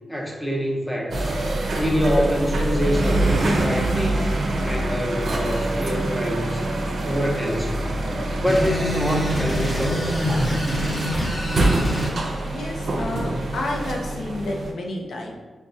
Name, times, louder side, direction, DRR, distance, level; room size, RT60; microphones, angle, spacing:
voice 1, 0.1-1.4 1.7-4.3 4.6-6.6 7.1-7.9 8.4-10.5, equal, 5° left, -1 dB, 0.8 m, -25 dB
sound 1, 1.1-14.7, right 1 dB, 65° right, 0.5 m, -25 dB
sound 2, 8.5-12.1, equal, 35° left, 1.0 m, -26 dB
voice 2, 12.4-15.4, left 1 dB, 80° left, 0 dB, 0.6 m, -31 dB
4.5 x 2.2 x 2.7 m, 1.4 s
cardioid pair, 60°, 0 cm